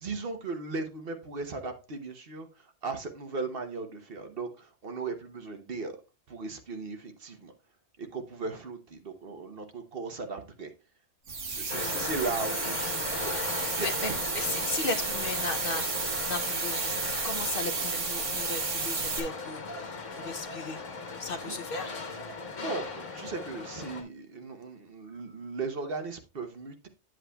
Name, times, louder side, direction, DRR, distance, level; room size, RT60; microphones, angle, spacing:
voice 1, 0.0-6.0 6.3-7.5 8.0-10.7 11.5-13.3 13.8-14.2 14.5-14.7 21.4-21.6 22.6-26.9, right 4 dB, 55° right, 1.0 m, -37 dB
sound 1, 11.3-19.2, right 4 dB, 80° right, 1.6 m, -32 dB
sound 2, 11.7-24.0, left 4 dB, 85° left, 1.7 m, -38 dB
voice 2, 13.8-14.1 14.3-17.0 17.2-20.8 21.2-21.9, left 3 dB, 55° left, 0.8 m, -36 dB
9.6 x 7.6 x 2.2 m
omnidirectional pair, 1.3 m